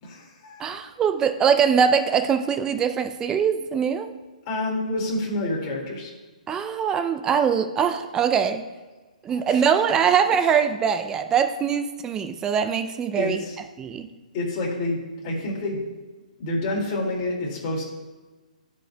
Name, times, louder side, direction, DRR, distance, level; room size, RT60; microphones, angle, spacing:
voice 1, 0.0-0.8 4.5-6.1 9.3-9.7 13.1-13.6 14.3-15.8 16.4-17.8, left 2 dB, 30° left, -3 dB, 2.1 m, -28 dB
voice 2, 0.6-4.1 6.5-8.6 9.2-13.4 13.8-14.1, right 7 dB, 15° right, 8 dB, 0.4 m, -22 dB
15.5 x 5.3 x 2.2 m, 1.3 s
hypercardioid pair, 145°, 4 cm